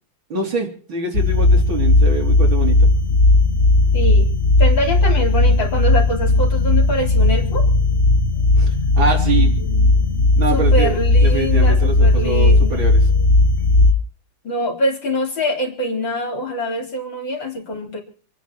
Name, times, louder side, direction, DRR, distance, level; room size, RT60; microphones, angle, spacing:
voice 1, 0.3-2.9 8.6-9.5 10.4-13.0, right 3 dB, 65° right, 1 dB, 4.2 m, -24 dB
sound 1, 1.1-13.9, left 2 dB, 35° left, 1.4 m, -15 dB
voice 2, 3.9-4.3 4.6-7.6 10.5-12.8 14.4-18.0, equal, 60° left, 1 dB, 4.5 m, -24 dB
27.5 x 10.0 x 4.5 m, 0.44 s
omnidirectional pair, 2.3 m